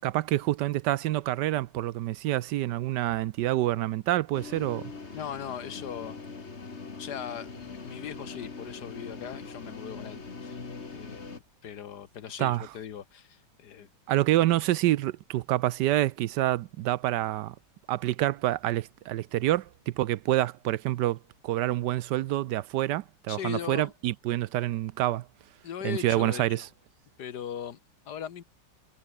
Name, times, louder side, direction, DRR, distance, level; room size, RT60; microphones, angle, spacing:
voice 1, 0.0-4.9 12.4-12.7 14.1-17.5 17.9-21.2 21.4-25.3 25.8-26.7, right 14 dB, 75° right, 1.1 m, -27 dB
sound 1, 4.3-11.4, left 4 dB, 35° left, 2.4 m, -42 dB
voice 2, 5.1-6.2 7.0-13.9 23.3-23.9 25.6-26.6 27.2-27.8 28.1-28.4, left 9 dB, 65° left, 1.6 m, -39 dB
omnidirectional pair, 2.0 m